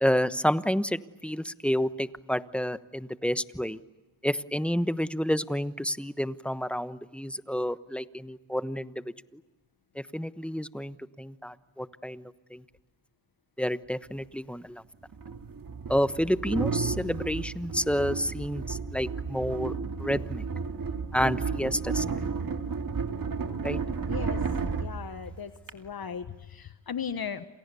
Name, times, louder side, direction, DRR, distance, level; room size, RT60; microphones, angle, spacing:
voice 1, 0.0-3.8 4.2-8.9 9.3-9.4 9.9-12.6 13.6-14.8 15.9-19.7 20.0-20.4 21.1-22.0 23.6-23.8, equal, ahead, 13 dB, 1.1 m, -29 dB
sound 1, 14.1-14.2 15.1-25.7, right 5 dB, 45° right, 2.5 m, -33 dB
voice 2, 24.1-24.5 24.8-27.5, left 7 dB, 50° left, 10 dB, 1.3 m, -37 dB
29.5 x 27.5 x 7.0 m, 1.2 s
cardioid pair, 60°, 47 cm